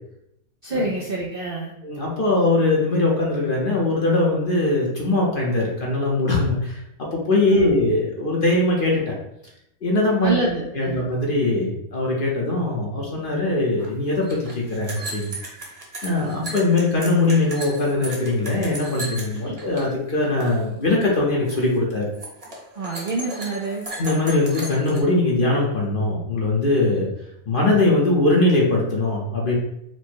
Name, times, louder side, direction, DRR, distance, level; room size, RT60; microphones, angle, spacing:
voice 1, 0.6-1.7 7.4-7.8 10.2-11.0 19.5-19.6 22.8-23.8, right 2 dB, 60° right, -2 dB, 0.6 m, -27 dB
voice 2, 1.8-9.1 9.8-10.3 10.7-15.3 16.0-22.1 24.0-27.1 27.5-29.6, left 2 dB, 45° left, -2 dB, 0.8 m, -21 dB
sound 1, 13.8-13.9 14.1-19.9 20.1-20.6 20.9-21.2 21.5-21.8 22.1-25.0, right 1 dB, 30° right, 1.0 m, -36 dB
4.4 x 2.1 x 4.4 m, 0.80 s
omnidirectional pair, 1.5 m